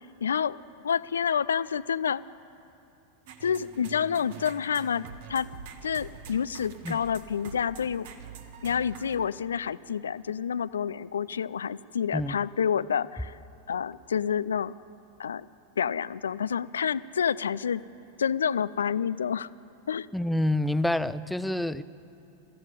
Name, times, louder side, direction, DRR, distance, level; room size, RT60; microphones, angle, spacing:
voice 1, 0.2-0.6 0.8-2.2 3.4-5.0 5.3-5.5 5.8-8.1 8.6-13.4 13.7-14.7 15.2-15.5 15.8-17.8 18.2-19.5 19.9-20.1, left 7 dB, 70° left, 17 dB, 0.4 m, -28 dB
sound 1, 3.3-9.2, right 6 dB, 50° right, 1.5 m, -45 dB
voice 2, 20.1-21.8, left 1 dB, 5° left, 15 dB, 0.5 m, -27 dB
21.5 x 14.0 x 9.2 m, 2.7 s
figure-of-eight pair, 90°, 0 cm